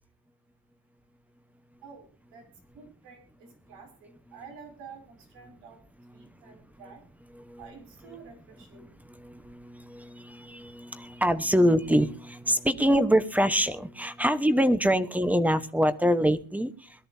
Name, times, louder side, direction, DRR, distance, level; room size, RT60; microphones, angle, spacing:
voice 1, 1.8-2.4 2.7-5.8 6.1-7.0 7.6-8.9, right 5 dB, 90° right, 3 dB, 6.4 m, -49 dB
voice 2, 9.2-16.7, equal, 5° right, 11 dB, 1.1 m, -25 dB
22.0 x 13.0 x 2.8 m, 0.38 s
cardioid pair, 120°, 40 cm